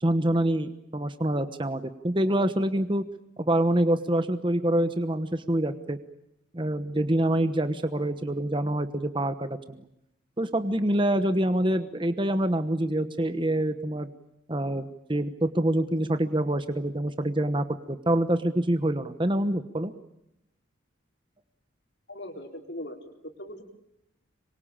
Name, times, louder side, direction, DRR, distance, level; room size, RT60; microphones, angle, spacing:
voice 1, 0.0-3.0 3.4-6.0 6.5-9.8 10.4-14.1 14.5-19.9, right 1 dB, 25° right, 10 dB, 1.1 m, -26 dB
voice 2, 22.1-23.6, left 1 dB, 55° left, 4 dB, 4.3 m, -40 dB
26.5 x 23.5 x 8.8 m, 0.83 s
head